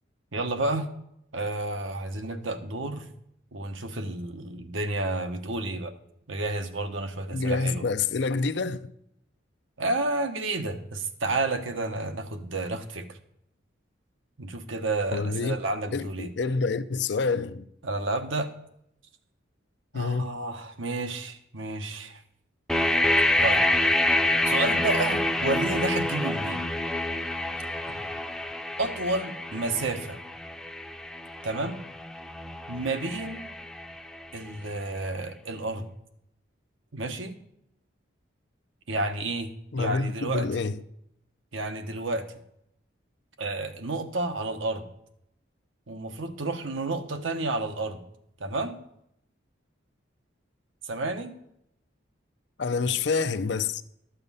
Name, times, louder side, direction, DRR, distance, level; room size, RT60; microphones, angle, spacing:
voice 1, 0.3-0.9 1.3-3.1 3.5-5.9 6.3-7.8 9.8-13.2 14.4-16.3 17.8-18.5 19.9-22.2 23.4-23.6 24.4-26.6 27.9-28.0 28.8-30.2 31.4-31.8 32.7-33.5 34.3-35.9 36.9-37.4 38.9-39.5 39.8-40.5 41.5-42.2 43.4-44.9 45.9-48.0 48.4-48.8 50.8-51.4, right 2 dB, 80° right, 1.0 m, -30 dB
voice 2, 7.3-8.9 15.1-15.6 15.9-17.7 19.9-20.3 39.7-40.8 52.6-53.8, left 4 dB, 60° left, 0.5 m, -27 dB
sound 1, 22.7-34.5, left 1 dB, 5° left, 0.6 m, -27 dB
12.0 x 6.9 x 5.5 m
head